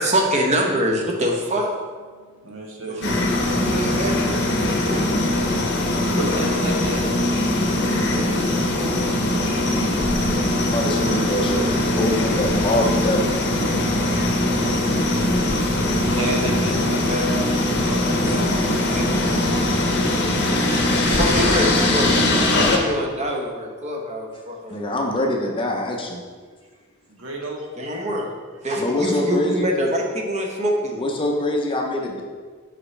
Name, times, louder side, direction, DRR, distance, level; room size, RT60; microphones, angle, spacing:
voice 1, 0.0-1.7 2.9-5.1 18.8-20.0 20.4-22.3 22.6-24.7 27.8-28.3 28.6-31.0, equal, 35° right, 0 dB, 0.8 m, -25 dB
voice 2, 2.1-3.1 6.1-7.2 7.8-8.8 13.7-14.4 15.2-17.4 17.8-18.5 20.6-21.4 27.1-27.7, right 1 dB, 65° right, 0 dB, 1.0 m, -32 dB
sound 1, 3.0-22.8, left 1 dB, 55° left, 0.8 m, -21 dB
voice 3, 10.7-13.5 24.7-26.2 28.8-29.7 30.9-32.2, left 1 dB, 25° left, 1 dB, 0.6 m, -24 dB
5.7 x 5.1 x 3.3 m, 1.5 s
head